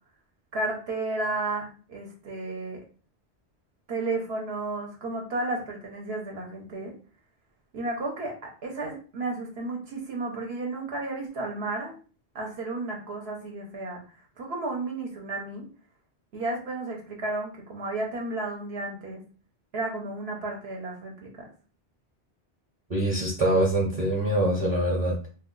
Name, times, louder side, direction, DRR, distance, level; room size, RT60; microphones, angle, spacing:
voice 1, 0.5-2.8 3.9-6.9 7.7-11.9 12.3-14.0 14.4-15.7 16.3-19.2 19.7-21.5, right 2 dB, 70° right, 0 dB, 0.9 m, -33 dB
voice 2, 22.9-25.3, right 1 dB, 35° right, -4 dB, 0.8 m, -24 dB
2.3 x 2.2 x 3.7 m, 0.38 s
omnidirectional pair, 1.1 m